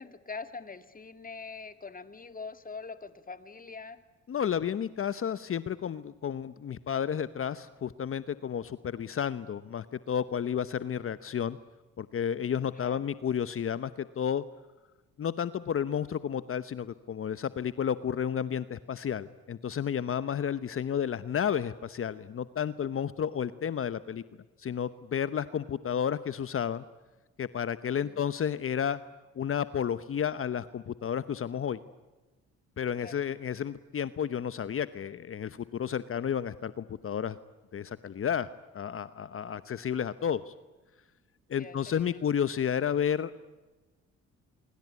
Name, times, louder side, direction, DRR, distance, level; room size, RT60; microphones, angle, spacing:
voice 1, 0.0-4.0 12.8-13.0 28.0-28.2 33.0-33.2 41.6-42.2, left 4 dB, 30° left, 11 dB, 2.2 m, -43 dB
voice 2, 4.3-11.6 12.0-14.4 15.2-24.2 24.6-26.8 27.4-29.0 29.3-31.8 32.8-37.4 37.7-40.5 41.5-43.4, left 8 dB, 45° left, 14 dB, 1.0 m, -31 dB
25.5 x 23.5 x 9.6 m, 1.2 s
cardioid pair, 90°, 30 cm